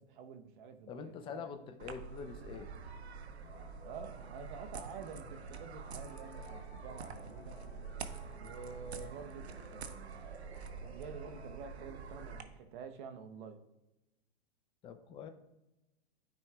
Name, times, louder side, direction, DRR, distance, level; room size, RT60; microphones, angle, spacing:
voice 1, 0.0-1.4 3.8-7.8 8.4-13.6, right 6 dB, 50° right, 8 dB, 1.0 m, -49 dB
voice 2, 0.9-2.7 14.8-15.3, left 6 dB, 15° left, 7 dB, 0.6 m, -45 dB
sound 1, 1.8-12.4, right 5 dB, 90° right, 0.8 m, -46 dB
sound 2, 3.4-11.6, left 9 dB, 80° left, 0.6 m, -58 dB
13.0 x 4.4 x 2.4 m, 0.96 s
hypercardioid pair, 130°, 31 cm